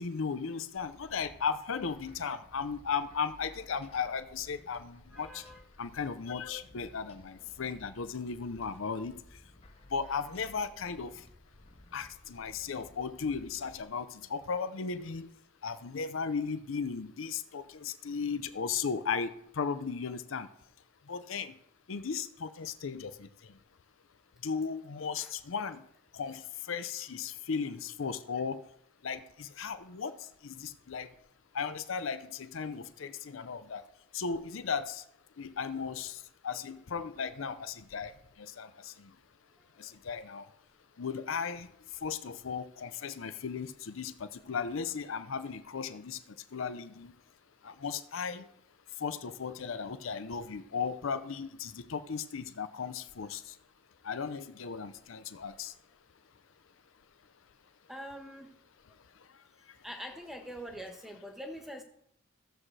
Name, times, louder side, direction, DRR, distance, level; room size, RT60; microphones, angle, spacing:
voice 1, 0.0-5.4 5.8-9.1 9.9-11.1 11.9-15.3 15.6-20.5 21.1-21.5 21.9-23.3 24.4-25.8 26.1-26.4 26.7-28.6 29.0-30.2 30.4-31.1 31.5-33.8 34.1-35.0 35.4-36.2 36.4-38.1 38.4-39.1 39.8-40.5 41.0-41.7 42.0-46.2 46.5-47.1 47.6-48.5 49.0-53.4 54.0-55.7, left 5 dB, 80° left, 11 dB, 0.6 m, -36 dB
sound 1, 0.8-13.8, left 1 dB, 30° left, 0.7 m, -57 dB
voice 2, 5.1-5.6 10.1-10.2 25.2-25.3 39.9-40.0 57.9-58.5 59.8-61.8, equal, ahead, 3 dB, 1.1 m, -44 dB
14.5 x 7.4 x 3.3 m, 0.73 s
head